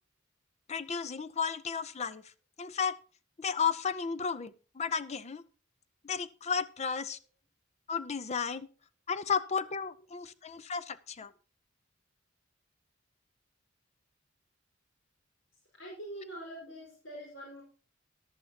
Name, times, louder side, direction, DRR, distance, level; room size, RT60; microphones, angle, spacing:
voice 1, 0.7-2.3 2.6-3.0 3.4-5.4 6.0-7.2 7.9-8.7 9.1-11.3, left 6 dB, 35° left, 15 dB, 0.5 m, -33 dB
voice 2, 15.8-17.6, right 1 dB, 65° left, -3 dB, 5.1 m, -44 dB
14.0 x 11.5 x 2.9 m, 0.35 s
head